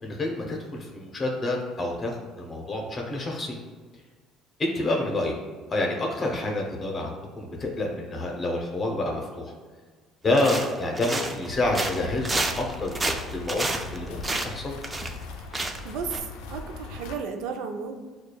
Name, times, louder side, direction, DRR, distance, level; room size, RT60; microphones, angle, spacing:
voice 1, 0.0-3.6 4.6-5.3 5.7-9.5 10.2-13.0 13.3-14.7, left 2 dB, 30° left, 0 dB, 0.8 m, -28 dB
sound 1, 10.3-11.5 11.7-15.2 15.5-15.8 16.1-16.2, right 2 dB, 20° right, 0.4 m, -30 dB
sound 2, 11.5-17.2, left 4 dB, 85° left, 0.4 m, -40 dB
voice 2, 15.8-18.0, right 6 dB, 75° right, 5 dB, 0.5 m, -34 dB
6.3 x 2.3 x 2.3 m, 1.4 s
supercardioid pair, 95°, 0 cm